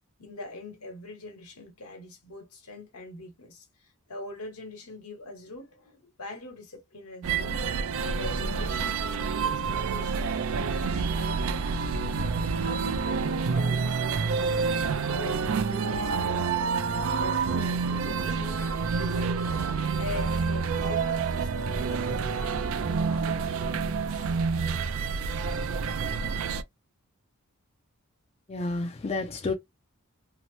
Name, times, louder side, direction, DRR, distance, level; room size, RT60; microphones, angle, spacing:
voice 1, 0.2-7.6 8.0-11.8 12.6-14.7 15.1-16.7 17.1-24.3, left 2 dB, 80° left, 1.2 m, -43 dB
sound 1, 7.2-26.6, right 5 dB, 60° right, 0.4 m, -28 dB
voice 2, 28.5-29.5, left 3 dB, 30° left, 0.4 m, -30 dB
2.8 x 2.0 x 2.9 m
head